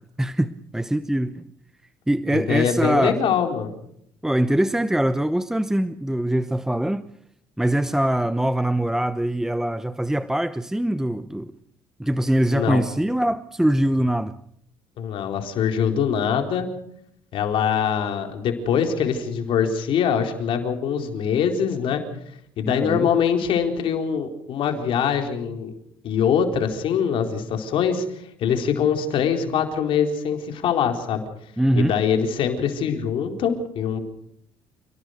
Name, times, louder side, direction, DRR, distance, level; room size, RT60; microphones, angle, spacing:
voice 1, 0.2-1.4 2.1-3.2 4.2-7.1 7.6-11.5 12.0-14.4 22.7-23.1 31.6-31.9, right 1 dB, 5° right, 0.9 m, -23 dB
voice 2, 2.3-3.7 12.5-12.8 15.0-16.7 17.3-22.0 22.6-25.7 26.0-31.2 31.7-34.0, left 7 dB, 65° left, 4.3 m, -23 dB
29.5 x 18.0 x 6.6 m
supercardioid pair, 85°, 10 cm